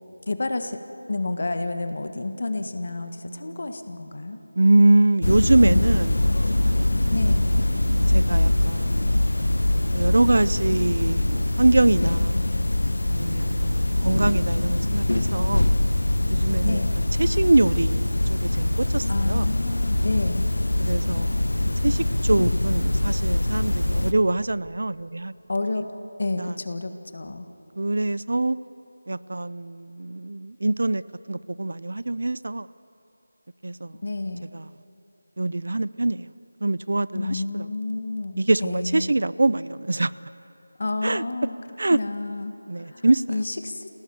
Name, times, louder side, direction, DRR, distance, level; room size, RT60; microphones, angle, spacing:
voice 1, 0.3-0.8 1.1-4.4 7.1-7.5 16.6-17.0 19.1-20.5 25.5-25.9 26.2-27.5 34.0-34.4 37.1-39.1 40.8-41.5 41.9-43.9, left 2 dB, 45° left, 7 dB, 1.6 m, -30 dB
voice 2, 3.0-3.6 4.6-6.2 7.2-7.4 7.7-9.3 9.9-12.4 13.0-15.7 16.3-16.8 17.2-19.5 20.8-21.4 21.8-25.3 26.4-26.5 27.8-28.6 29.1-31.0 31.3-32.7 33.6-33.9 34.5-34.6 35.4-36.3 36.6-37.6 38.4-40.1 41.0-41.2 41.8-42.0 42.7-43.2, right 2 dB, 55° right, 18 dB, 0.5 m, -24 dB
sound 1, 5.2-24.1, left 1 dB, 85° left, 1.1 m, -23 dB
30.0 x 18.0 x 7.2 m, 2.9 s
figure-of-eight pair, 175°, 0 cm